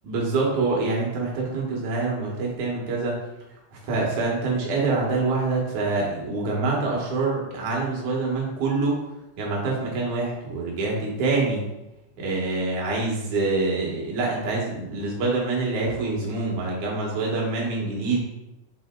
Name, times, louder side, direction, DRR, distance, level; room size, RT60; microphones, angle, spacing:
voice 1, 0.0-3.2 3.7-9.0 9.4-11.7 12.2-18.2, right 3 dB, 60° right, -3 dB, 2.3 m, -25 dB
7.1 x 3.7 x 3.7 m, 0.94 s
omnidirectional pair, 4.7 m